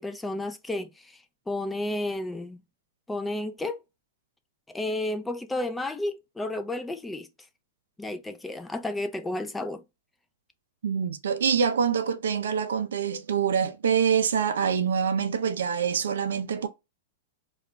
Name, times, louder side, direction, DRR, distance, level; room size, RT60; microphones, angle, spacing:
voice 1, 0.0-2.6 3.1-3.8 4.7-7.3 8.0-9.8, left 1 dB, 10° left, 0.4 m, -32 dB
voice 2, 10.8-16.7, right 7 dB, 75° right, 0.4 m, -25 dB
2.4 x 2.2 x 3.6 m
hypercardioid pair, 120°, 0 cm